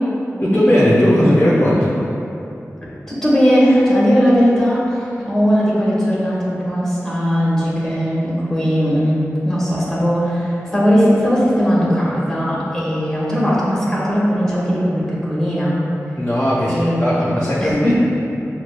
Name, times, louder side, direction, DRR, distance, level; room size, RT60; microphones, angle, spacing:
voice 1, 0.4-1.9 16.2-17.9, equal, 35° left, -9 dB, 0.8 m, -16 dB
voice 2, 3.2-15.8 16.7-17.2 17.6-17.9, equal, 10° left, -7 dB, 1.1 m, -18 dB
6.0 x 2.3 x 2.2 m, 2.8 s
wide cardioid pair, 65°, 6 cm